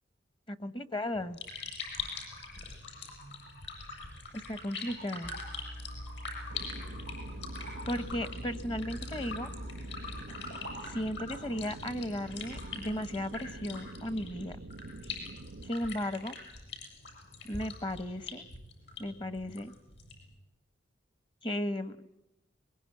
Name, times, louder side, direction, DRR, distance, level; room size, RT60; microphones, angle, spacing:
voice 1, 0.5-1.4 4.3-5.3 7.8-9.5 10.8-14.6 15.6-16.3 17.4-18.5 19.0-19.7 21.4-22.0, left 1 dB, 25° left, 14 dB, 1.1 m, -35 dB
sound 1, 1.1-20.3, left 4 dB, 65° left, 7.9 m, -43 dB
sound 2, 5.2-10.2, equal, 85° left, 5.4 m, -44 dB
sound 3, 6.5-15.7, right 2 dB, 85° right, 0.8 m, -46 dB
23.0 x 22.0 x 9.7 m, 0.92 s
head